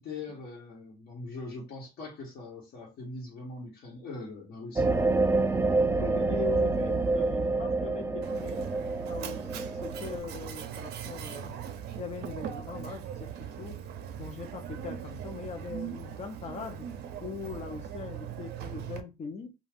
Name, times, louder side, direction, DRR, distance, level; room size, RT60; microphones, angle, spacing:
voice 1, 0.0-5.2, left 3 dB, 65° left, 1.1 m, -42 dB
sound 1, 4.8-10.2, right 3 dB, 15° right, 0.4 m, -27 dB
voice 2, 5.9-8.7 9.1-11.6 12.0-13.8 14.2-16.9 17.2-19.5, left 5 dB, 40° left, 0.6 m, -41 dB
Mechanisms, 8.2-19.0, right 9 dB, 75° right, 0.5 m, -40 dB
2.4 x 2.3 x 3.3 m
cardioid pair, 110°, 17 cm